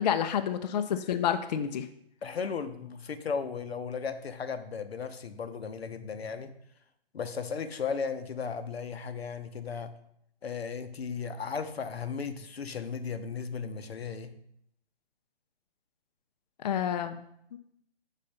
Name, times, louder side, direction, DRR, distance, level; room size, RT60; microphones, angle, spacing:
voice 1, 0.0-1.9 16.6-17.3 17.5-17.6, left 9 dB, 45° left, 8 dB, 0.4 m, -29 dB
voice 2, 2.2-6.5 7.1-9.9 10.4-14.3, left 6 dB, 80° left, 10 dB, 0.7 m, -35 dB
5.4 x 4.1 x 5.4 m, 0.74 s
figure-of-eight pair, 135°, 30 cm